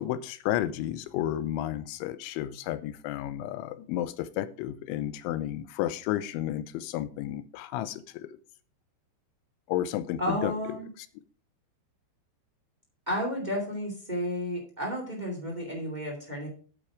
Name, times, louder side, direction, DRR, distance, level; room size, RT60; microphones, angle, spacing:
voice 1, 0.0-8.3 9.7-10.5, left 13 dB, 85° left, 13 dB, 2.9 m, -32 dB
voice 2, 10.2-10.9 13.0-16.5, equal, 30° right, -1 dB, 0.7 m, -32 dB
8.7 x 7.7 x 4.8 m, 0.41 s
omnidirectional pair, 5.5 m